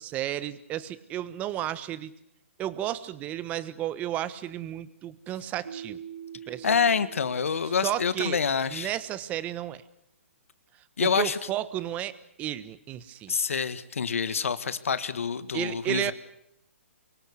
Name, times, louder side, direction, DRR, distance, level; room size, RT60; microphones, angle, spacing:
voice 1, 0.0-2.1 2.6-6.0 6.5-6.7 7.6-8.4 8.7-9.8 11.0-13.3 15.5-16.1, right 12 dB, 20° right, 16 dB, 1.3 m, -33 dB
Keyboard (musical), 5.6-8.5, right 8 dB, 85° right, 6.4 m, -44 dB
voice 2, 6.6-8.9 11.0-11.4 13.3-16.1, left 6 dB, 75° left, 13 dB, 1.7 m, -27 dB
24.5 x 23.5 x 8.3 m, 0.77 s
hypercardioid pair, 150°, 7 cm